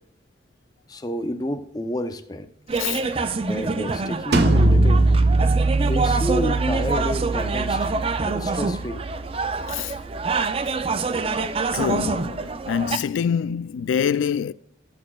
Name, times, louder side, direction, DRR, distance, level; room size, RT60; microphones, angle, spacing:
voice 1, 0.9-2.5 3.5-5.0 5.8-7.9 8.3-9.0, equal, 20° left, 0.6 m, -30 dB
voice 2, 2.7-3.2 9.7-10.0 11.7-14.5, left 7 dB, 90° left, 0.3 m, -25 dB
sound 1, 2.7-13.0, right 4 dB, 30° right, 0.4 m, -26 dB
sound 2, 4.3-10.0, right 2 dB, 60° right, 0.9 m, -21 dB
17.0 x 6.2 x 2.3 m
head